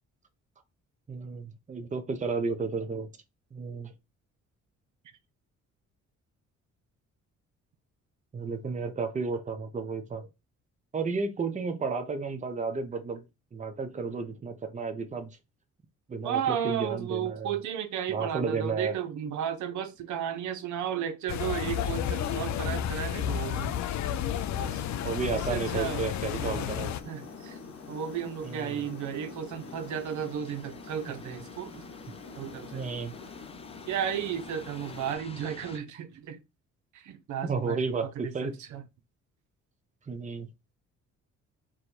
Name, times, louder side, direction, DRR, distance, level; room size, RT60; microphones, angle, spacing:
voice 1, 1.1-3.1 3.5-3.9 8.3-10.3 10.9-13.3 13.5-15.4 16.1-17.5 18.1-18.9 25.0-27.0 28.4-28.8 32.7-33.2 37.4-38.5 40.1-40.5, right 4 dB, 25° right, 0.7 m, -32 dB
voice 2, 16.2-23.8 24.6-24.8 25.3-26.1 26.4-26.7 27.0-27.6 27.9-31.9 32.4-32.9 33.9-36.4 36.9-38.8, right 9 dB, 75° right, 0.7 m, -34 dB
sound 1, 21.3-27.0, left 10 dB, 65° left, 0.5 m, -31 dB
sound 2, 21.7-35.8, left 4 dB, 20° left, 0.5 m, -51 dB
sound 3, 22.8-35.2, left 4 dB, 50° left, 1.1 m, -47 dB
4.8 x 2.2 x 4.2 m
cardioid pair, 90°, 30 cm